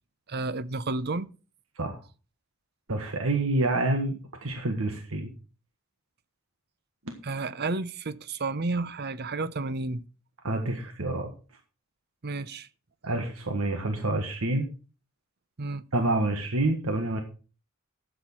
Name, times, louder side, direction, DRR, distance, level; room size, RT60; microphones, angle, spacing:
voice 1, 0.3-1.3 7.2-10.0 12.2-12.7 15.6-15.8, right 3 dB, 50° right, 0.8 m, -31 dB
voice 2, 2.9-5.3 7.1-7.2 10.4-11.3 13.0-14.7 15.9-17.2, right 2 dB, 85° right, 1.5 m, -28 dB
12.5 x 8.0 x 4.5 m
head